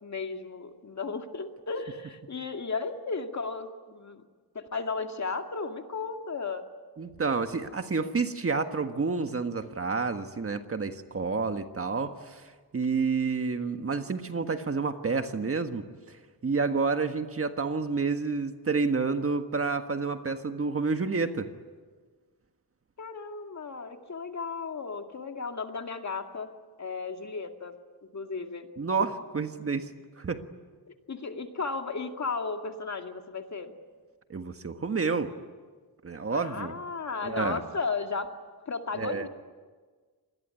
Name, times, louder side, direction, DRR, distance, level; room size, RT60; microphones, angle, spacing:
voice 1, 0.0-4.2 4.5-6.6 23.0-26.5 26.8-27.7 28.1-28.7 29.0-29.1 30.9-33.7 36.3-38.3 38.7-39.3, left 4 dB, 45° left, 5 dB, 2.2 m, -35 dB
voice 2, 7.0-12.4 12.7-16.2 16.4-21.5 28.8-30.4 34.3-35.3 36.0-36.7 37.2-37.6 38.9-39.3, right 4 dB, 35° right, 7 dB, 1.6 m, -29 dB
27.0 x 20.5 x 9.7 m, 1.5 s
wide cardioid pair, 115°, 39 cm